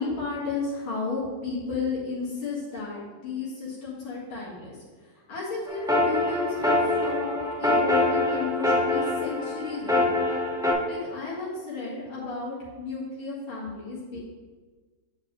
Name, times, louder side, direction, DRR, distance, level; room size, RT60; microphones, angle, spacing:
voice 1, 0.0-4.8 5.1-10.1 10.9-14.2, left 4 dB, 90° left, -7 dB, 2.6 m, -33 dB
sound 1, 5.7-10.7, left 2 dB, 5° right, 0.5 m, -24 dB
8.6 x 7.3 x 3.1 m, 1.4 s
omnidirectional pair, 2.2 m